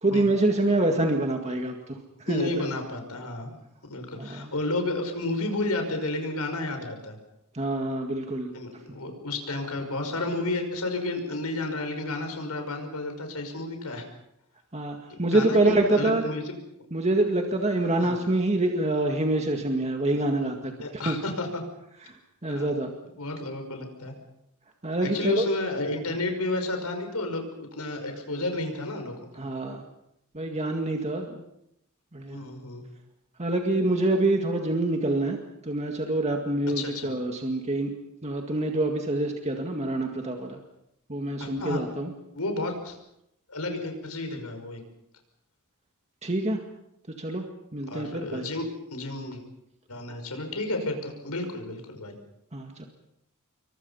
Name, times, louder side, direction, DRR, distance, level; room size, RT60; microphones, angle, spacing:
voice 1, 0.0-2.0 2.3-2.5 4.2-4.5 7.5-8.5 14.7-16.2 16.9-20.7 21.0-21.2 22.4-22.9 24.8-25.4 29.4-29.9 30.3-31.5 32.1-32.4 33.4-35.4 35.6-37.9 38.2-40.6 41.1-42.1 46.2-46.6 47.2-47.5 47.7-48.4 52.5-52.9, right 2 dB, 30° right, 3 dB, 2.0 m, -26 dB
voice 2, 2.3-3.6 3.9-7.2 8.5-14.1 15.1-16.5 18.0-18.2 20.8-21.6 22.5-22.7 23.2-24.1 25.0-29.2 32.3-32.9 36.8-37.1 41.4-41.8 42.3-43.0 43.5-44.8 47.9-48.6 48.9-49.4 49.9-52.1, left 2 dB, 85° left, 5 dB, 5.5 m, -31 dB
28.0 x 23.5 x 5.6 m, 0.80 s
head